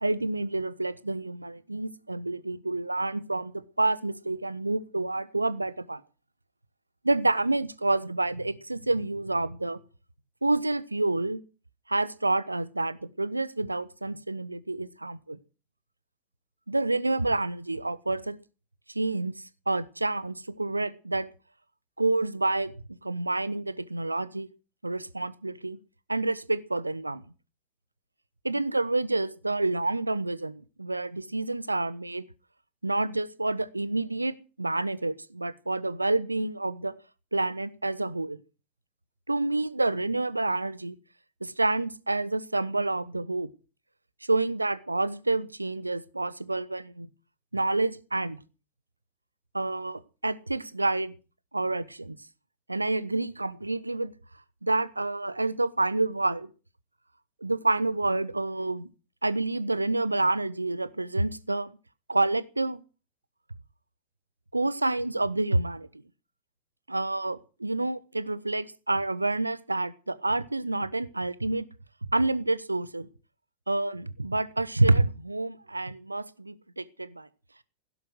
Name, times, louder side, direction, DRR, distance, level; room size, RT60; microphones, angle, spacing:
voice 1, 0.0-6.0 7.0-9.8 10.4-11.4 11.9-15.4 16.7-18.4 18.9-19.3 19.7-21.3 22.0-22.7 23.0-24.5 24.8-25.8 26.1-27.2 28.4-32.2 32.8-36.9 37.3-38.4 39.3-40.9 41.4-43.5 44.3-47.1 47.5-48.4 49.5-51.1 51.5-52.2 52.7-54.1 54.6-56.5 57.4-58.9 59.2-61.7 62.1-62.8 64.5-65.9 66.9-71.7 72.1-73.1 73.7-77.3, right 2 dB, 85° right, 17 dB, 1.1 m, -28 dB
16.5 x 11.0 x 7.9 m, 0.36 s
figure-of-eight pair, 90°, 0 cm